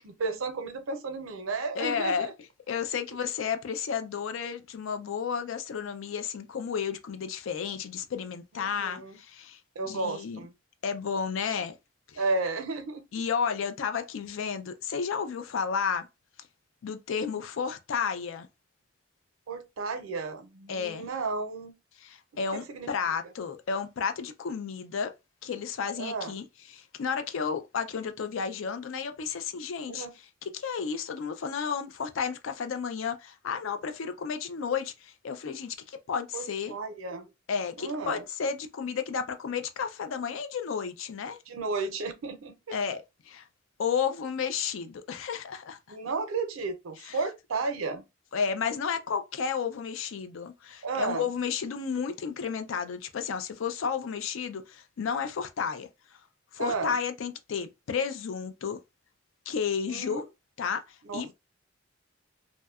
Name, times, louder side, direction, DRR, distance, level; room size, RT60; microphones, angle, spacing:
voice 1, 0.0-2.3 8.5-9.2 9.8-10.5 12.2-13.0 19.5-21.7 22.5-22.9 26.0-26.3 29.9-30.1 36.3-37.3 37.8-38.2 41.5-42.8 45.9-48.0 50.8-51.3 56.6-57.0 59.9-60.2 61.0-61.3, right 3 dB, 90° right, 0.5 m, -33 dB
voice 2, 1.8-2.3 2.7-9.6 9.9-10.4 10.8-11.7 12.1-12.2 13.1-16.1 16.8-18.5 20.7-21.0 22.0-25.1 25.4-26.4 26.7-30.1 30.5-36.7 37.5-41.4 42.7-43.4 43.8-46.0 47.1-47.2 48.3-55.9 56.5-58.8 59.5-60.2 60.6-60.8 61.1-61.3, left 6 dB, 75° left, 0.4 m, -32 dB
2.7 x 2.1 x 2.3 m
head